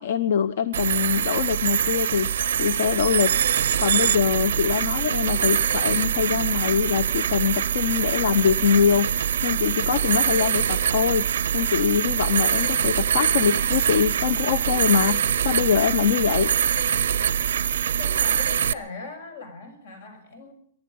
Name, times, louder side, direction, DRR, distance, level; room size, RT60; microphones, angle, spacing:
voice 1, 0.0-3.3 3.6-11.3 11.5-16.5, left 7 dB, 65° left, 16 dB, 0.7 m, -23 dB
sound 1, 0.7-18.7, right 9 dB, 90° right, 0.6 m, -24 dB
voice 2, 18.0-20.5, left 4 dB, 85° left, 7 dB, 6.3 m, -40 dB
24.0 x 11.0 x 5.4 m, 0.63 s
hypercardioid pair, 165°, 0 cm